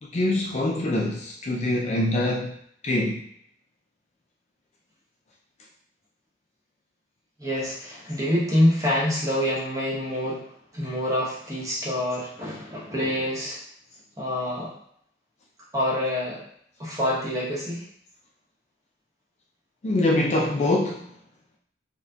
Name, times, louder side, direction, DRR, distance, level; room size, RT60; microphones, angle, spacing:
voice 1, 0.0-2.6 2.8-3.2 19.8-21.2, left 1 dB, 35° left, -2 dB, 0.4 m, -24 dB
voice 2, 7.4-10.5 10.7-13.6 14.2-14.7 15.7-16.4 16.8-17.8, left 1 dB, 15° right, -5 dB, 0.9 m, -26 dB
4.2 x 2.2 x 2.7 m, 0.66 s
head